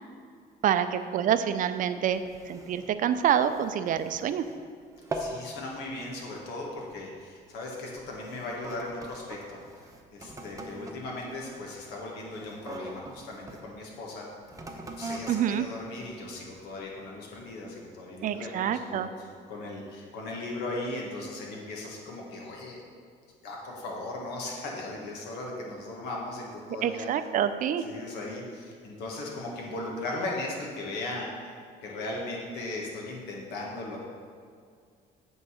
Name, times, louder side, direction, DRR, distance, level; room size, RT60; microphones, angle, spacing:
voice 1, 0.6-2.2 2.5-4.4 15.3-15.6 18.2-19.1 26.8-27.8, right 9 dB, 50° right, 11 dB, 0.5 m, -27 dB
sound 1, 2.1-4.7 4.9-5.5 5.9-6.2 6.9-7.1 7.8-13.6 14.4-16.8 17.4-17.5, right 2 dB, 20° right, 0.8 m, -42 dB
voice 2, 5.1-14.3 15.0-22.8 23.4-27.1 27.8-31.3 31.8-34.0, left 2 dB, 85° left, -2 dB, 1.6 m, -37 dB
8.3 x 3.9 x 6.4 m, 2.2 s
cardioid pair, 110°, 17 cm